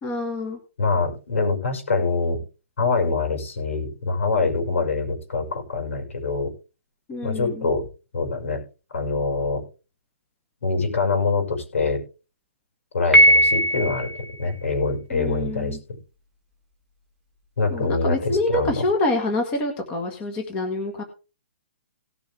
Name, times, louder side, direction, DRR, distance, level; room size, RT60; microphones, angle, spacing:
voice 1, 0.0-0.6 7.1-7.7 15.1-15.8 17.7-21.0, left 2 dB, 15° left, 3 dB, 1.6 m, -26 dB
voice 2, 0.8-2.4 2.8-6.5 7.2-7.8 8.1-8.6 8.9-9.6 10.6-12.0 12.9-15.8 17.6-18.8, left 4 dB, 75° left, 5 dB, 5.9 m, -24 dB
Piano, 13.1-14.3, right 1 dB, 5° right, 1.7 m, -17 dB
18.0 x 6.9 x 3.5 m, 0.32 s
hypercardioid pair, 175°, 7 cm